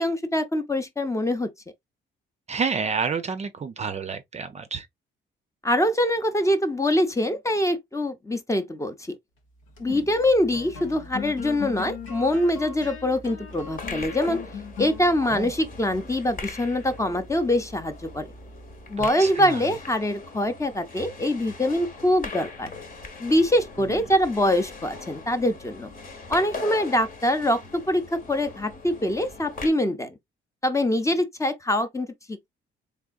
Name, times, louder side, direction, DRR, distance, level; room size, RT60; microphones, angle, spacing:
voice 1, 0.0-1.5 5.6-9.2 9.8-14.4 14.8-18.3 18.9-22.7 23.2-25.9 26.3-30.2 30.6-32.5, left 1 dB, 15° left, 0.7 m, -24 dB
voice 2, 2.5-4.9 9.9-10.0 15.2-15.5 19.0-19.7 23.8-24.0, right 5 dB, 35° right, 0.5 m, -30 dB
sound 1, 9.5-19.2, left 5 dB, 85° left, 1.0 m, -40 dB
sound 2, 13.5-29.7, left 3 dB, 45° left, 1.1 m, -41 dB
3.5 x 3.4 x 2.4 m
cardioid pair, 90°, 20 cm